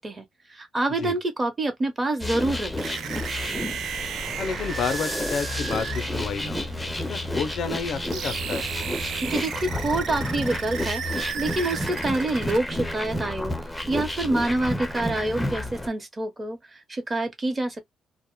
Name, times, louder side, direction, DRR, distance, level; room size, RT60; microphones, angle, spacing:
voice 1, 0.0-2.9 9.2-11.0 11.3-13.6 13.9-17.8, right 2 dB, 25° right, 0.8 m, -27 dB
sound 1, 2.2-15.9, left 1 dB, 10° left, 0.5 m, -31 dB
sound 2, 2.8-12.6, right 7 dB, 75° right, 0.5 m, -34 dB
voice 2, 4.4-6.7 7.1-8.6, left 5 dB, 65° left, 0.4 m, -30 dB
2.0 x 2.0 x 2.9 m
cardioid pair, 90°, 0 cm